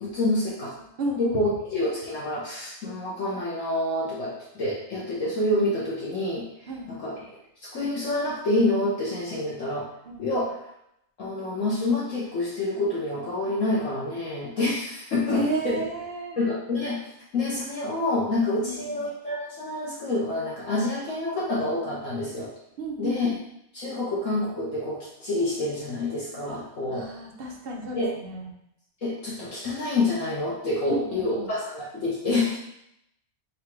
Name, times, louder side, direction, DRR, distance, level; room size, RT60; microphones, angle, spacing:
voice 1, 0.0-0.7 1.2-6.4 6.9-7.1 7.6-9.9 10.2-10.5 11.2-15.8 16.4-17.0 17.3-22.5 23.0-23.3 23.7-27.1 28.0-28.1 29.0-32.6, left 2 dB, 60° left, -7 dB, 1.2 m, -27 dB
voice 2, 0.8-1.5 6.7-6.9 10.0-10.2 15.3-16.4 18.6-19.0 22.8-23.2 26.5-26.6 26.9-28.5 30.9-31.5, right 2 dB, 55° right, 1 dB, 0.7 m, -33 dB
3.9 x 2.3 x 4.4 m, 0.79 s
omnidirectional pair, 1.6 m